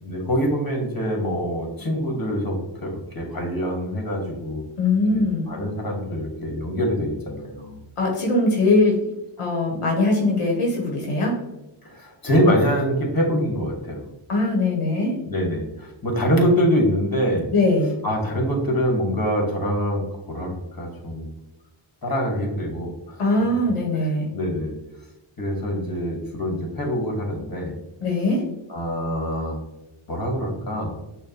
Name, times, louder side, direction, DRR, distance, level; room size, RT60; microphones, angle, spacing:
voice 1, 0.0-4.6 5.1-7.8 11.8-14.1 15.3-17.5 18.0-21.3 22.0-23.2 24.0-24.7 25.4-27.7 28.7-29.6 30.1-30.9, equal, 45° left, 1 dB, 1.4 m, -24 dB
voice 2, 4.8-5.5 8.0-8.9 9.4-11.3 14.3-15.1 17.5-17.9 23.2-24.3 28.0-28.4, left 2 dB, 80° left, -1 dB, 0.9 m, -21 dB
6.2 x 2.1 x 2.8 m, 0.99 s
cardioid pair, 50°, 50 cm